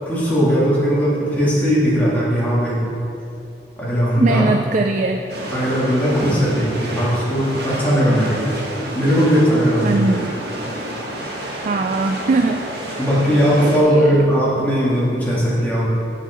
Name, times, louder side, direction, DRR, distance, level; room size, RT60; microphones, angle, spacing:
voice 1, 0.0-2.9 3.8-4.5 5.5-8.5 8.9-10.0 13.0-16.0, equal, 10° left, -8 dB, 2.3 m, -18 dB
voice 2, 4.2-5.2 9.8-10.3 11.6-12.6 13.3-14.2, right 3 dB, 45° right, 4 dB, 0.4 m, -21 dB
sound 1, 5.3-13.8, right 1 dB, 65° right, 1.5 m, -29 dB
7.6 x 7.5 x 5.0 m, 2.7 s
head